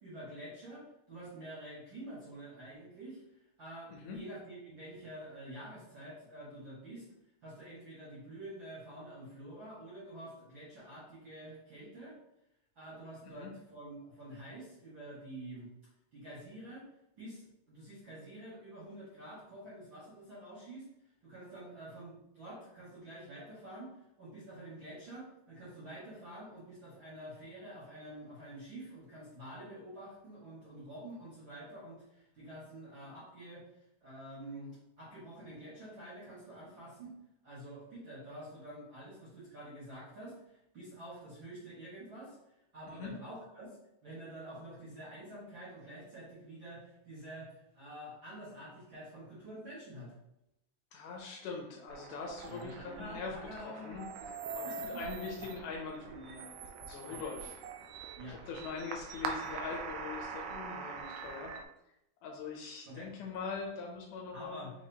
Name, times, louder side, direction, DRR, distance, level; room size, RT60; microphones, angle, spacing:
voice 1, 0.0-7.1 7.4-12.1 12.7-15.7 16.1-16.8 17.2-20.9 21.2-23.9 24.2-37.1 37.4-43.7 44.0-50.1 52.5-54.0 54.6-55.0 57.0-57.3 58.1-58.4 62.9-63.1 64.3-64.7, right 1 dB, 50° right, -8 dB, 1.5 m, -48 dB
voice 2, 50.9-54.0 54.5-56.5 56.8-57.6 58.2-61.5 62.2-64.7, left 5 dB, 75° left, 0 dB, 2.0 m, -42 dB
sound 1, 51.9-61.6, right 4 dB, 80° right, 2.1 m, -43 dB
5.9 x 3.1 x 2.8 m, 0.85 s
omnidirectional pair, 4.0 m